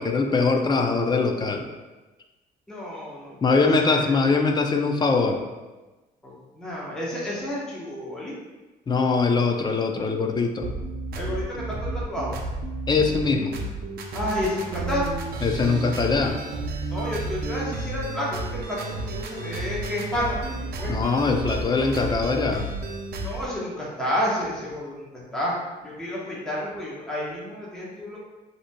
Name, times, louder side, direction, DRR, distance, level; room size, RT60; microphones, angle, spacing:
voice 1, 0.0-1.7 3.4-5.4 8.9-10.7 12.9-13.5 15.4-16.4 20.9-22.7, left 4 dB, 25° left, 4 dB, 0.5 m, -22 dB
voice 2, 2.7-4.2 6.2-8.4 11.1-12.4 14.1-15.1 16.9-21.0 23.2-25.5 25.8-28.2, left 1 dB, 5° left, -7 dB, 1.0 m, -30 dB
sound 1, 10.6-23.5, right 2 dB, 65° right, 0.7 m, -32 dB
7.7 x 2.9 x 2.2 m, 1.2 s
cardioid pair, 110°, 17 cm